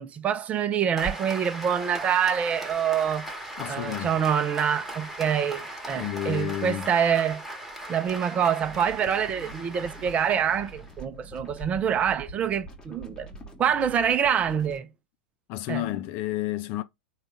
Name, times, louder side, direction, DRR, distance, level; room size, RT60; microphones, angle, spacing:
voice 1, 0.0-3.3 3.7-7.4 7.9-13.3 13.6-14.9 15.7-15.8, right 8 dB, 25° right, 0.6 m, -26 dB
Applause, 1.0-11.0, right 1 dB, ahead, 1.2 m, -38 dB
voice 2, 3.6-4.2 5.9-6.9 15.5-16.8, left 14 dB, 40° left, 0.4 m, -31 dB
sound 1, 8.6-14.8, right 2 dB, 15° left, 1.2 m, -45 dB
3.9 x 2.4 x 3.5 m
figure-of-eight pair, 95°, 5 cm